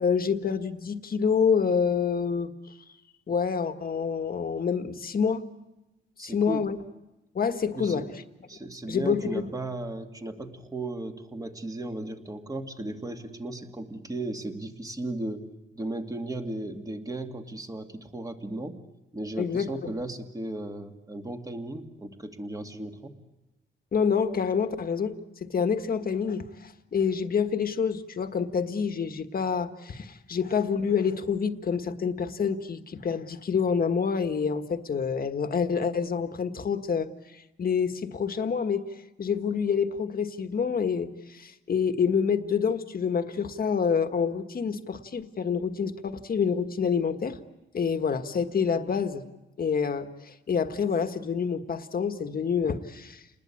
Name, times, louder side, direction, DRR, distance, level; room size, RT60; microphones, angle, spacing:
voice 1, 0.0-2.5 3.3-5.4 6.2-6.8 7.3-8.1 8.9-9.4 19.4-19.9 23.9-37.1 37.3-47.4 47.7-49.2 49.6-53.2, left 6 dB, 45° left, 8 dB, 1.5 m, -27 dB
voice 2, 6.2-6.6 7.8-8.1 8.5-15.4 15.7-18.8 19.1-23.2, right 2 dB, 20° right, 4 dB, 2.2 m, -35 dB
29.5 x 20.0 x 8.5 m, 1.0 s
cardioid pair, 120°, 20 cm